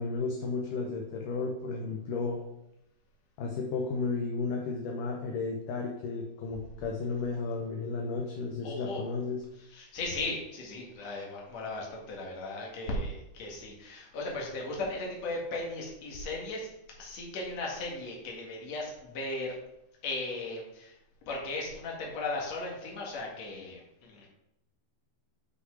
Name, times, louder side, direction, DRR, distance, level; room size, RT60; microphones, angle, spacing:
voice 1, 0.0-2.4 3.4-9.4, left 4 dB, 70° left, 0 dB, 2.2 m, -33 dB
voice 2, 8.6-9.0 9.7-16.7 17.0-19.5 20.0-20.9 21.3-24.3, left 2 dB, 50° left, -2 dB, 2.7 m, -36 dB
8.2 x 5.8 x 4.8 m, 0.85 s
omnidirectional pair, 4.4 m